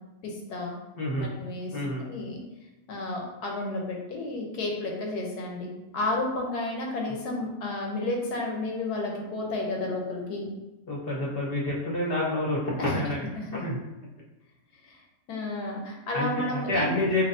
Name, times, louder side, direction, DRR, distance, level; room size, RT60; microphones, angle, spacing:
voice 1, 0.2-0.7 1.2-2.4 2.9-10.5 12.9-13.0 13.4-13.6 14.8-15.0 15.3-16.9, left 2 dB, 85° left, 0 dB, 1.3 m, -32 dB
voice 2, 1.0-1.3 1.7-2.1 10.9-13.3 13.6-13.8 16.1-17.3, left 1 dB, 45° left, -4 dB, 0.9 m, -28 dB
4.3 x 3.1 x 2.6 m, 1.0 s
omnidirectional pair, 1.6 m